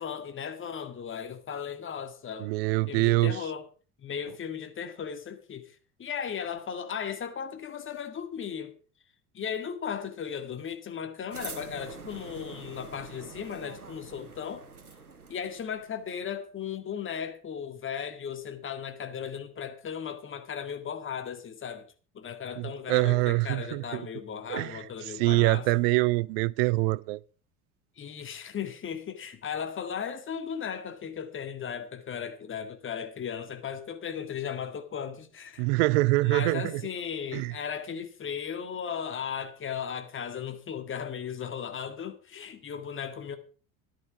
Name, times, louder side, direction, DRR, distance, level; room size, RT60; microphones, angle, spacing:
voice 1, 0.0-2.5 2.9-3.7 4.0-8.7 9.3-14.6 15.3-21.9 22.1-25.8 28.0-35.7 36.2-43.4, left 7 dB, 30° left, 1.9 m, -36 dB
voice 2, 2.4-3.4 22.6-24.1 24.5-24.8 25.2-27.2 35.6-36.8 37.3-37.5, right 21 dB, 45° right, 0.5 m, -25 dB
sound 1, 11.3-16.1, right 4 dB, 90° right, 0.9 m, -45 dB
14.0 x 11.0 x 4.9 m
figure-of-eight pair, 70°, 42 cm